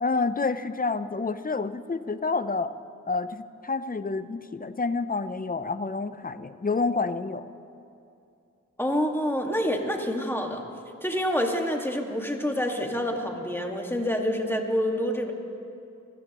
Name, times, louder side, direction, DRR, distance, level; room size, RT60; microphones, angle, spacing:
voice 1, 0.0-2.7 3.1-7.4, left 4 dB, 30° left, 12 dB, 0.6 m, -28 dB
voice 2, 8.8-10.6 11.0-15.3, equal, 5° left, 2 dB, 1.9 m, -27 dB
25.0 x 14.0 x 3.1 m, 2.6 s
cardioid pair, 40°, 30 cm